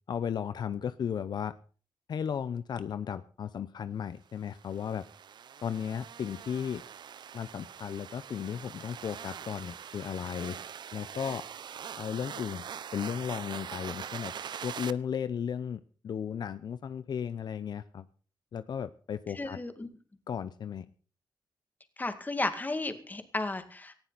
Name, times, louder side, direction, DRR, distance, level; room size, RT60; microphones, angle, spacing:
voice 1, 0.1-1.5 2.1-5.0 5.6-6.8 7.3-10.6 10.9-11.4 12.0-12.7 12.9-14.3 14.6-18.0 18.5-19.6 20.3-20.9, left 8 dB, 70° left, 13 dB, 0.7 m, -35 dB
sound 1, 4.5-14.9, right 8 dB, 75° right, 0.7 m, -43 dB
voice 2, 19.3-19.9 22.0-23.9, left 2 dB, 25° left, 8 dB, 2.2 m, -33 dB
19.0 x 14.5 x 4.1 m, 0.39 s
wide cardioid pair, 105°, 8 cm